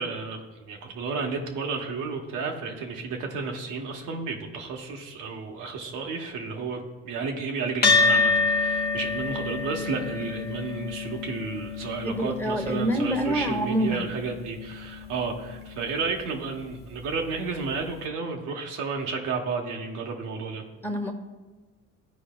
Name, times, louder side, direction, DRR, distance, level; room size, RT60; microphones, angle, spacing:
voice 1, 0.0-20.6, right 4 dB, 90° right, 1 dB, 1.0 m, -32 dB
sound 1, 7.8-16.5, left 4 dB, 35° left, 0.9 m, -28 dB
voice 2, 12.0-14.1 20.8-21.1, right 1 dB, 5° left, 3 dB, 1.0 m, -26 dB
13.5 x 4.7 x 2.3 m, 1.2 s
cardioid pair, 90°, 30 cm